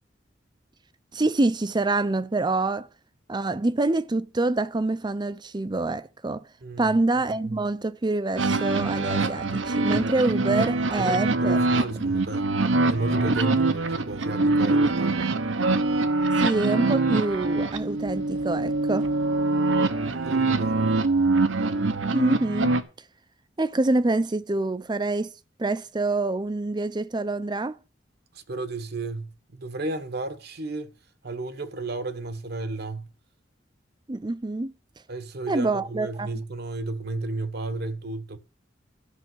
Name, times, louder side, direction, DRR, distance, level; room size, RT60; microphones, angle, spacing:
voice 1, 1.1-2.9 3.3-6.4 6.8-11.6 16.4-19.1 22.1-22.7 23.6-25.3 25.6-27.8 34.1-34.7 35.5-36.3, right 2 dB, 25° right, 0.5 m, -26 dB
voice 2, 6.6-7.0 7.4-7.6 11.0-12.5 12.9-15.3 20.0-21.0 28.3-30.9 31.2-33.1 35.1-38.4, right 2 dB, 55° right, 1.1 m, -33 dB
sound 1, 8.4-22.8, right 3 dB, 85° right, 1.0 m, -24 dB
13.0 x 5.8 x 7.8 m
head